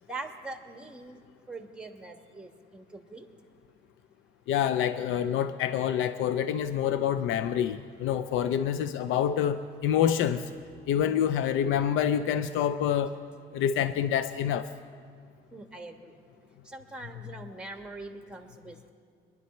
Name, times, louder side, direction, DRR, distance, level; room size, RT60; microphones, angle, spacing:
voice 1, 0.1-1.2 1.5-3.2 10.9-11.2 15.5-16.1 16.7-18.9, right 2 dB, 5° right, 5 dB, 1.3 m, -43 dB
voice 2, 4.5-10.4 10.9-13.1 13.5-14.7, left 9 dB, 90° left, 11 dB, 0.4 m, -27 dB
22.5 x 10.5 x 4.2 m, 2.1 s
cardioid pair, 90°, 20 cm